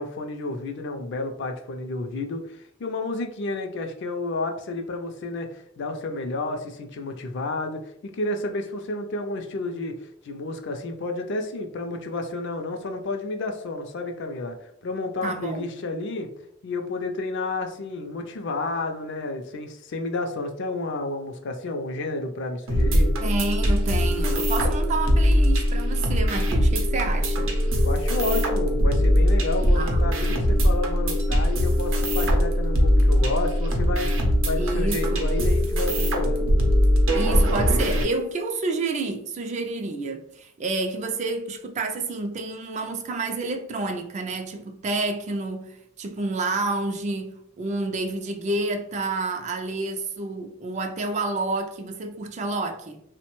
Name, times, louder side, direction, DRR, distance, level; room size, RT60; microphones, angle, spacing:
voice 1, 0.0-16.3 16.6-23.1 27.8-36.5, left 2 dB, 60° left, 0.4 m, -31 dB
voice 2, 15.2-15.6 23.2-27.5 29.7-30.0 34.6-35.3 37.1-53.0, right 3 dB, 35° right, 0.3 m, -29 dB
sound 1, 22.7-38.0, equal, 80° right, 0.6 m, -21 dB
3.1 x 2.1 x 2.9 m
head